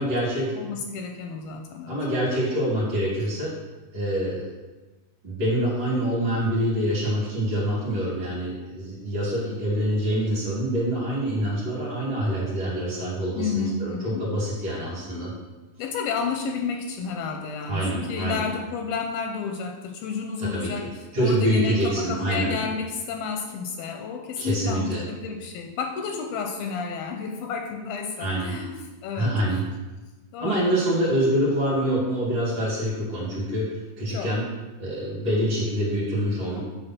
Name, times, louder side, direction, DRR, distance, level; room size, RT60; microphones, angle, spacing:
voice 1, 0.0-0.5 1.9-3.5 3.9-4.5 5.2-15.3 17.7-18.5 20.4-22.6 24.4-25.1 28.2-28.5 29.1-29.6 30.4-34.4 34.8-36.6, right 1 dB, 45° right, -5 dB, 2.9 m, -26 dB
voice 2, 0.5-2.0 13.4-14.2 15.8-20.9 21.2-28.7 29.0-29.3 30.3-30.7 34.1-34.3, left 5 dB, 80° left, 3 dB, 2.3 m, -31 dB
8.0 x 3.7 x 5.9 m, 1.2 s
omnidirectional pair, 4.5 m